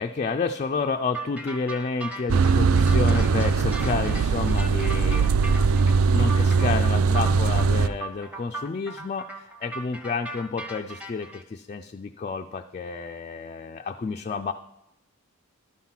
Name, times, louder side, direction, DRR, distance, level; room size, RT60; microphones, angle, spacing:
voice 1, 0.0-5.3 6.1-14.5, left 4 dB, 30° left, 5 dB, 0.3 m, -30 dB
sound 1, 1.1-11.4, right 2 dB, 5° right, 0.7 m, -38 dB
sound 2, 2.3-7.9, right 5 dB, 65° right, 0.3 m, -21 dB
11.5 x 5.9 x 5.6 m, 0.86 s
head